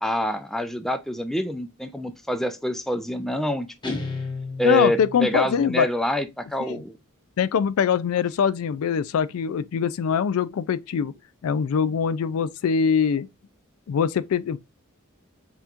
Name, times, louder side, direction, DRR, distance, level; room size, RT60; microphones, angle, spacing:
voice 1, 0.0-4.0 4.6-7.0, equal, ahead, 0.3 m, -26 dB
Guitar, 3.8-5.5, left 3 dB, 20° left, 1.1 m, -33 dB
voice 2, 4.6-5.9 6.7-6.8 7.4-11.1 11.4-13.3 13.9-14.6, left 7 dB, 75° left, 0.3 m, -23 dB
5.5 x 3.0 x 2.4 m
head